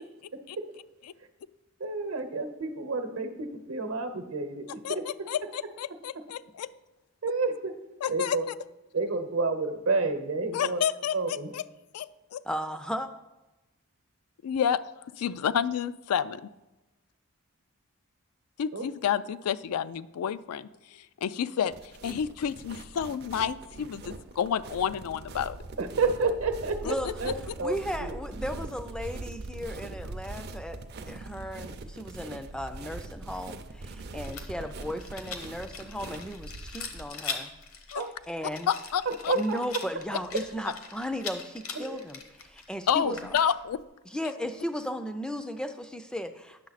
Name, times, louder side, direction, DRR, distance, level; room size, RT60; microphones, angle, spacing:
voice 1, 0.3-0.7 1.8-5.3 7.2-7.7 8.1-8.4 8.9-10.8 11.1-11.5 18.7-18.8 25.8-26.8 27.2-27.3 27.6-28.5 37.9-38.1 39.1-39.6 41.8-42.0 43.0-43.1, right 3 dB, 70° right, 8 dB, 0.9 m, -30 dB
voice 2, 5.3-6.7 8.0-8.4 10.5-11.6 11.9-12.4 14.4-14.8 15.2-16.4 18.6-21.7 22.0-25.6 37.9-38.0 38.7-39.3 42.9-43.8, left 8 dB, 85° left, 15 dB, 0.3 m, -29 dB
voice 3, 12.4-13.1 26.8-27.1 27.6-30.8 31.1-37.5 38.3-38.7 39.3-43.4 44.1-46.7, equal, 5° left, 8 dB, 0.3 m, -35 dB
sound 1, 21.7-37.1, right 2 dB, 45° right, 0.5 m, -42 dB
Rattle, 34.2-43.8, left 5 dB, 70° left, 0.9 m, -41 dB
9.5 x 6.4 x 4.0 m, 1.0 s
head